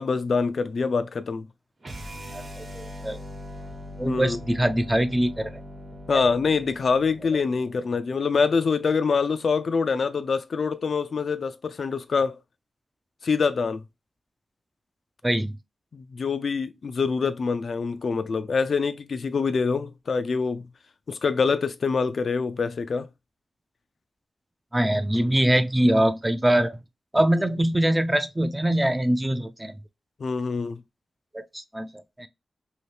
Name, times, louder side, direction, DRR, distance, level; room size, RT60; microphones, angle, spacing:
voice 1, 0.0-1.5 4.1-4.4 6.1-12.4 13.2-13.8 15.9-20.7 21.1-23.1 30.2-30.8, left 5 dB, 65° left, 0.3 m, -25 dB
sound 1, 1.8-8.0, left 1 dB, 50° right, 0.9 m, -41 dB
voice 2, 2.3-3.2 4.0-5.6 6.1-6.2 15.2-15.5 24.7-26.8 27.1-29.7 31.3-31.9 32.2-32.3, right 1 dB, 15° right, 0.3 m, -23 dB
2.8 x 2.6 x 3.2 m
wide cardioid pair, 95°, 0 cm